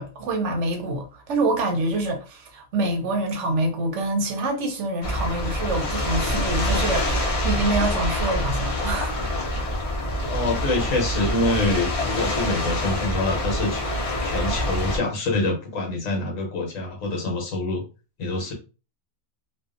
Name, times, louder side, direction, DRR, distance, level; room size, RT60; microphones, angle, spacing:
voice 1, 0.0-9.3, right 2 dB, 65° right, 0.9 m, -26 dB
sound 1, 5.0-15.0, left 1 dB, 45° left, 0.4 m, -26 dB
voice 2, 10.3-13.8 14.2-17.8 18.2-18.5, left 2 dB, 70° left, 1.2 m, -25 dB
2.7 x 2.3 x 2.4 m
omnidirectional pair, 1.5 m